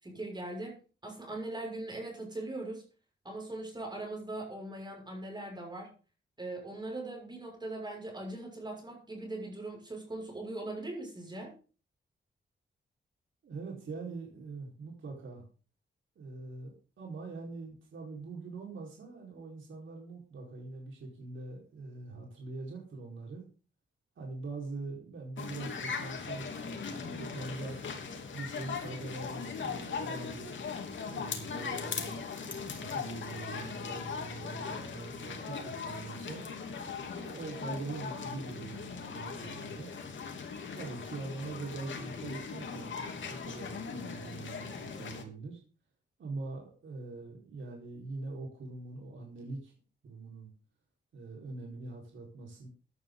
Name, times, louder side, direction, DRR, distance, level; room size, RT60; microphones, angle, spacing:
voice 1, 0.0-2.8 3.2-5.9 6.4-11.5, right 2 dB, 20° right, 1 dB, 6.4 m, -40 dB
voice 2, 13.4-15.4 16.1-23.5 24.2-27.8 28.3-30.6 31.1-36.5 37.2-39.9 40.7-45.6 46.2-49.7 50.0-50.5 51.1-52.7, right 3 dB, 80° right, -1 dB, 4.8 m, -43 dB
sound 1, 25.4-45.2, left 5 dB, 75° left, 3.1 m, -39 dB
16.5 x 11.0 x 4.0 m, 0.36 s
wide cardioid pair, 140°, 20 cm